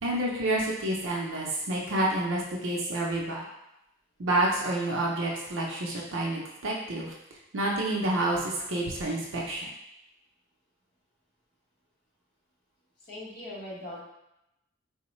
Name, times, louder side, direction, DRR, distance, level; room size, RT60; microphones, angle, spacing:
voice 1, 0.0-3.4 4.2-7.1 7.5-9.7, right 1 dB, 65° right, -3 dB, 0.5 m, -29 dB
voice 2, 13.0-14.0, left 1 dB, 50° left, -6 dB, 1.0 m, -40 dB
3.7 x 2.1 x 3.0 m, 0.86 s
head